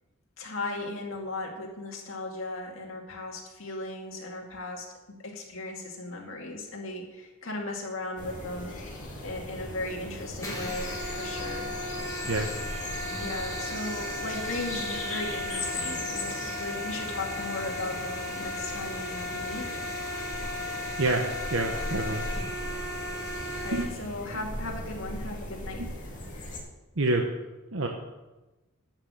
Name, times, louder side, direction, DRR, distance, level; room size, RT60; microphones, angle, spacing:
voice 1, 0.4-8.7 9.2-11.7 13.2-19.7 23.6-25.8, left 2 dB, 65° left, 0 dB, 2.2 m, -37 dB
sound 1, 8.2-26.6, left 1 dB, 35° left, 3.2 m, -39 dB
sound 2, 10.4-23.8, left 1 dB, 15° left, 2.3 m, -35 dB
voice 2, 21.5-22.3 23.7-24.5 25.8-25.9 27.0-27.2 27.7-27.9, right 2 dB, 65° right, 2 dB, 1.0 m, -28 dB
11.5 x 6.1 x 7.5 m, 1.1 s
head